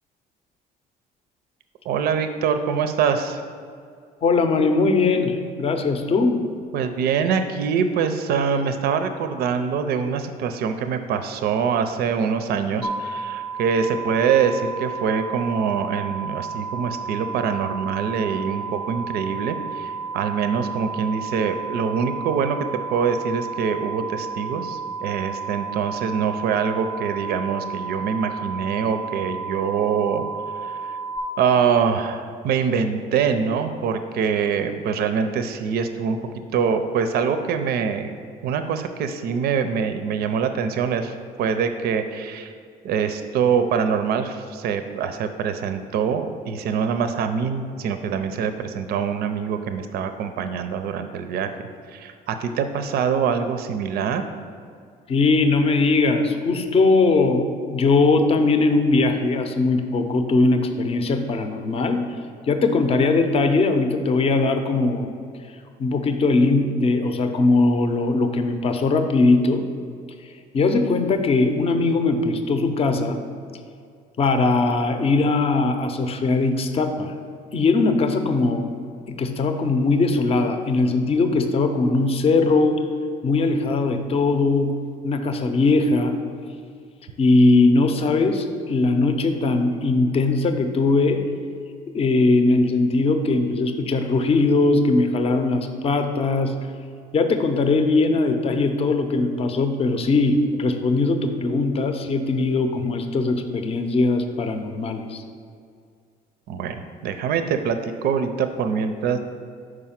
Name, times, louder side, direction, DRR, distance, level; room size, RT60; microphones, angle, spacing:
voice 1, 1.8-3.4 6.7-22.6 22.9-30.2 30.6-30.8 31.4-36.2 36.5-38.1 38.4-42.5 42.8-51.5 51.9-54.2 106.5-109.2, right 6 dB, 65° right, 8 dB, 0.5 m, -24 dB
voice 2, 4.2-6.4 55.1-62.0 62.5-65.1 65.8-69.6 70.2-73.2 74.2-77.1 77.5-78.7 79.2-82.8 83.2-84.8 85.0-86.1 87.2-91.2 91.9-96.5 97.1-105.2, left 3 dB, 35° left, 7 dB, 0.6 m, -20 dB
sound 1, 12.8-31.2, right 5 dB, ahead, 0.7 m, -32 dB
4.9 x 4.8 x 5.8 m, 2.3 s
cardioid pair, 110°, 17 cm